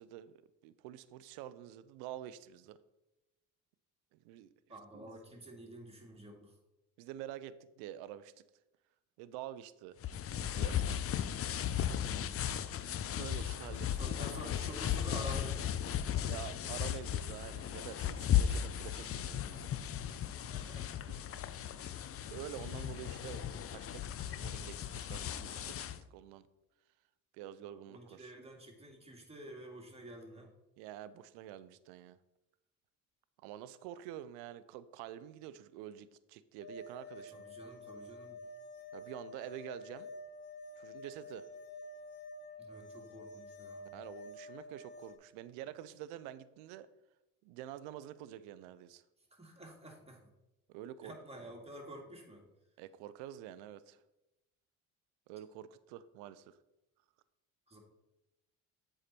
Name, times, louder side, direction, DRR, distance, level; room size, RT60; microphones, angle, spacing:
voice 1, 0.0-2.8 4.1-4.5 4.9-5.2 7.0-8.3 9.2-10.0 10.6-11.0 13.2-14.2 16.1-19.7 21.1-21.2 21.7-22.0 22.3-26.5 27.3-28.3 30.8-32.2 33.4-37.4 38.9-40.1 40.8-41.5 43.9-46.9 47.4-49.0 50.7-51.5 52.8-54.0 55.3-56.6, right 11 dB, 80° right, 15 dB, 0.6 m, -48 dB
voice 2, 4.7-6.6 12.1-12.4 14.0-16.4 20.5-20.9 27.6-30.5 37.3-38.4 42.6-44.0 49.3-50.3 51.0-52.5 57.7-57.8, right 1 dB, 15° right, 1 dB, 2.2 m, -50 dB
sound 1, 10.0-26.0, left 10 dB, 40° left, 0.5 m, -36 dB
sound 2, 36.6-45.2, left 2 dB, 75° left, 1.1 m, -49 dB
7.7 x 4.9 x 4.3 m, 0.94 s
hypercardioid pair, 60°, 38 cm